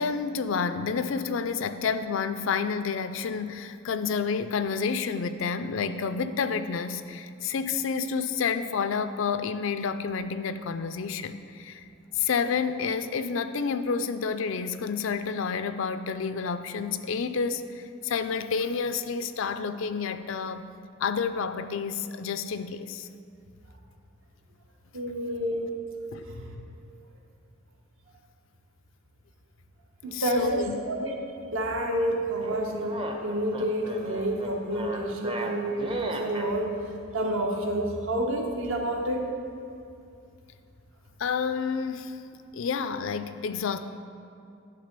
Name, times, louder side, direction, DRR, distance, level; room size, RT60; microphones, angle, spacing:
voice 1, 0.0-11.9 12.2-20.7 21.0-23.1 26.1-26.2 30.1-30.7 41.2-42.2 42.5-43.8, left 5 dB, 65° left, 10 dB, 0.4 m, -29 dB
voice 2, 24.9-25.7 26.2-26.6 30.0-31.2 31.5-36.8 37.1-39.2, right 1 dB, 70° right, 1 dB, 1.0 m, -29 dB
sound 1, 32.4-36.5, right 2 dB, 25° right, 0.6 m, -35 dB
11.0 x 3.7 x 6.6 m, 2.6 s
head